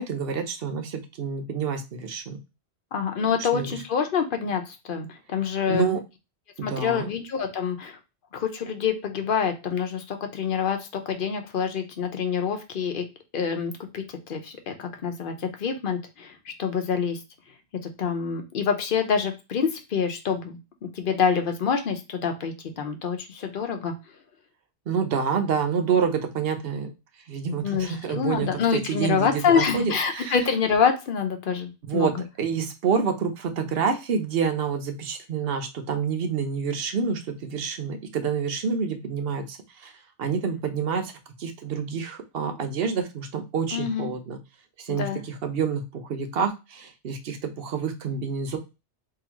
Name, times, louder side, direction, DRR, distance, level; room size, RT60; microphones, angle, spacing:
voice 1, 0.0-2.4 3.5-3.8 5.7-6.0 6.6-7.1 24.9-26.9 27.3-30.4 31.9-39.9 40.2-41.1 41.4-44.4 44.8-48.6, right 6 dB, 65° right, 6 dB, 0.9 m, -28 dB
voice 2, 2.9-5.9 6.6-8.0 8.3-13.0 13.3-17.2 17.8-20.6 20.9-23.9 27.6-32.1 43.7-44.1 45.0-45.2, left 6 dB, 55° left, 6 dB, 0.8 m, -26 dB
3.7 x 2.9 x 2.9 m, 0.26 s
omnidirectional pair, 1.2 m